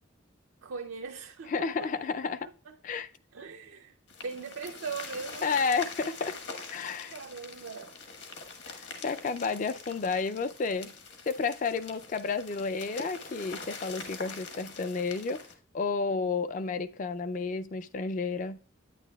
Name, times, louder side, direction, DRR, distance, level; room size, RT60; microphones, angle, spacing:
voice 1, 0.6-1.9 2.2-2.3 2.7-2.8 3.3-4.0 4.2-5.5 7.1-8.0, right 5 dB, 85° right, 0.5 m, -40 dB
voice 2, 1.5-2.5 2.8-3.1 5.4-6.3 6.7-7.1 8.7-10.9 11.3-15.4 15.7-18.6, left 4 dB, 40° left, 0.3 m, -31 dB
sound 1, 4.1-15.5, left 4 dB, 60° left, 1.2 m, -44 dB
9.2 x 8.9 x 2.3 m
head